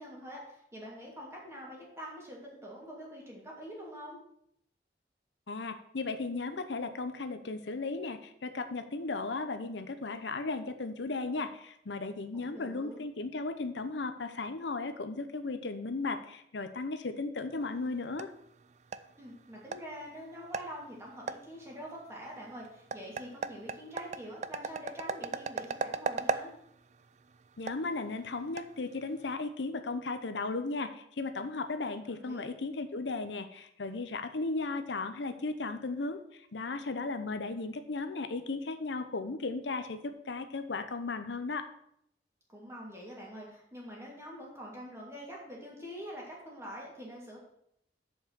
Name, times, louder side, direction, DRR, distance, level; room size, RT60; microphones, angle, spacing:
voice 1, 0.0-4.2 12.3-13.0 19.2-26.5 32.2-32.5 42.5-47.4, equal, 15° right, -3 dB, 2.6 m, -45 dB
voice 2, 5.5-18.3 27.6-41.6, left 3 dB, 80° left, 9 dB, 0.8 m, -36 dB
sound 1, 17.5-29.4, right 4 dB, 40° right, 0.4 m, -40 dB
7.2 x 5.5 x 7.2 m, 0.72 s
head